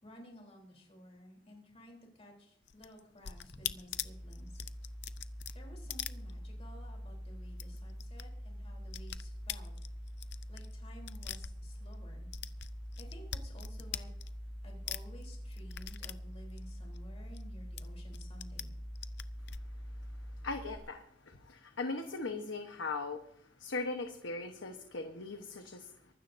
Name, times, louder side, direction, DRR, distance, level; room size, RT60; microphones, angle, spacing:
voice 1, 0.0-4.7 5.5-9.7 10.5-12.3 13.0-14.1 14.6-18.7, equal, 35° left, 0 dB, 3.6 m, -54 dB
sound 1, 2.6-6.9 7.1-7.2 7.5-8.2 8.5-12.0 12.3-14.6 14.9-17.4 17.8-18.6 19.0-19.6, left 11 dB, 65° left, 0.6 m, -43 dB
sound 2, 3.9-20.8, equal, 5° right, 1.5 m, -45 dB
voice 2, 20.4-23.2 23.6-25.9, left 3 dB, 90° left, 5 dB, 1.2 m, -39 dB
24.0 x 13.0 x 2.7 m, 0.69 s
head